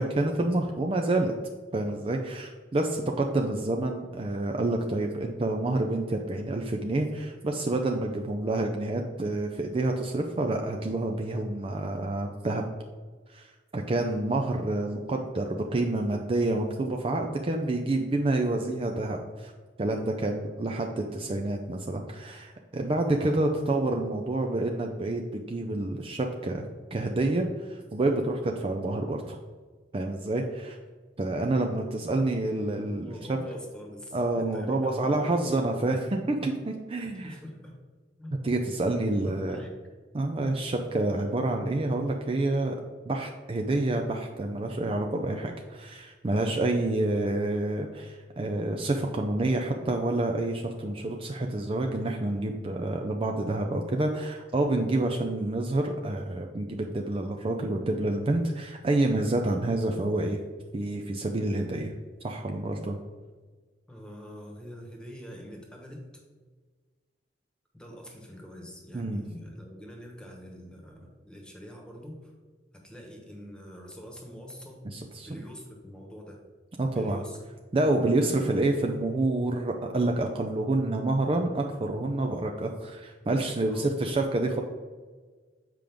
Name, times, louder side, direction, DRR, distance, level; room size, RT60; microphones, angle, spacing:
voice 1, 0.0-1.3 1.7-12.6 13.3-19.5 19.8-29.4 29.9-30.8 31.2-33.4 34.1-37.4 38.4-39.6 40.1-42.8 43.1-60.4 60.7-61.9 62.2-63.0 68.9-69.2 74.9-75.3 76.8-77.2 77.7-84.6, right 2 dB, 30° right, 3 dB, 0.4 m, -28 dB
voice 2, 33.0-35.6 37.2-37.8 38.2-38.4 39.0-39.7 63.9-66.0 67.7-72.3 72.8-74.9 75.2-76.4 76.9-77.4 78.1-78.5 83.7-84.1, equal, 5° left, 0 dB, 1.3 m, -45 dB
7.5 x 5.0 x 3.5 m, 1.4 s
head